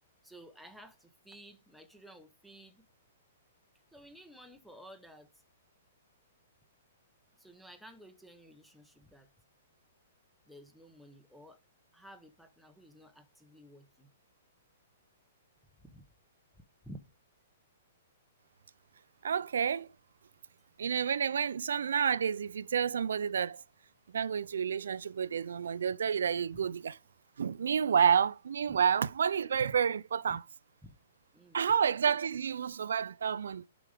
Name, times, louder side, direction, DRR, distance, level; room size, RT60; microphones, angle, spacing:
voice 1, 0.2-2.8 3.9-5.3 7.4-9.3 10.5-11.6 11.9-14.1 15.8-16.0 16.8-17.0 28.7-28.8 30.3-30.4 30.8-30.9 31.3-31.6, right 1 dB, ahead, 0.9 m, -53 dB
voice 2, 19.2-19.9 20.8-23.6 24.1-27.0 27.4-30.4 31.5-33.6, right 7 dB, 85° right, 0.5 m, -29 dB
11.0 x 5.0 x 5.0 m
hypercardioid pair, 165°, 0 cm